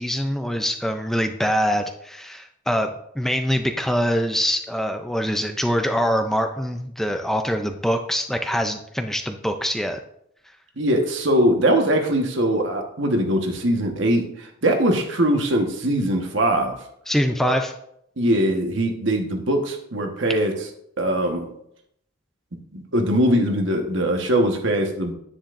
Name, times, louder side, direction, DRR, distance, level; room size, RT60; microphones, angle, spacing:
voice 1, 0.0-2.9 3.2-10.0 17.1-17.7, equal, ahead, 5 dB, 0.4 m, -24 dB
voice 2, 10.8-16.7 17.4-17.5 18.2-20.7 21.0-21.5 22.7-25.1, right 1 dB, 60° right, 3 dB, 1.4 m, -21 dB
10.0 x 10.0 x 2.6 m, 0.74 s
head